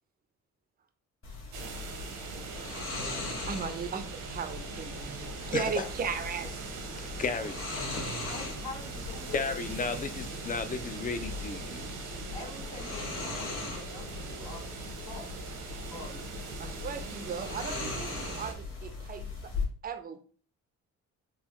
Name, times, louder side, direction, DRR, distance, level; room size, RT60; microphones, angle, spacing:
sound 1, 1.2-19.6, left 3 dB, 45° left, 1.4 m, -40 dB
sound 2, 1.5-18.5, right 4 dB, 80° right, 0.9 m, -42 dB
voice 1, 3.5-6.6 16.6-19.5 19.8-20.2, right 6 dB, 30° right, 0.5 m, -37 dB
voice 2, 5.5-5.9 7.1-7.6 9.3-11.9, left 4 dB, 30° left, 0.4 m, -33 dB
voice 3, 8.2-10.2 12.3-15.5 15.9-16.2, left 2 dB, 65° left, 1.7 m, -46 dB
3.9 x 2.3 x 2.9 m
cardioid pair, 90°, 30 cm